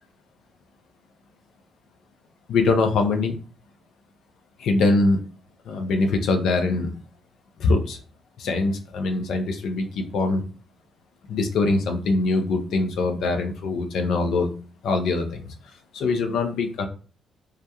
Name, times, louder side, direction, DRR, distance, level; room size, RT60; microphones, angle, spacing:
voice 1, 2.5-3.4 4.6-5.2 5.7-6.9 7.6-8.0 8.4-10.4 11.3-14.5 14.8-15.5 15.9-16.9, left 3 dB, 65° left, 5 dB, 0.5 m, -23 dB
2.4 x 2.1 x 2.7 m, 0.38 s
hypercardioid pair, 40°, 0 cm